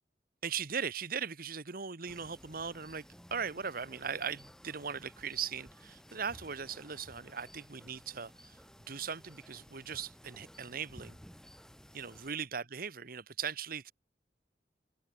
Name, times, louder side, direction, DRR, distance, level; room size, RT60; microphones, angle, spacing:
voice 1, 0.4-8.6 8.9-11.2 11.9-13.9, right 6 dB, 55° right, 1.3 m, -39 dB
sound 1, 2.1-12.3, equal, 5° left, 6.7 m, -56 dB
open air
head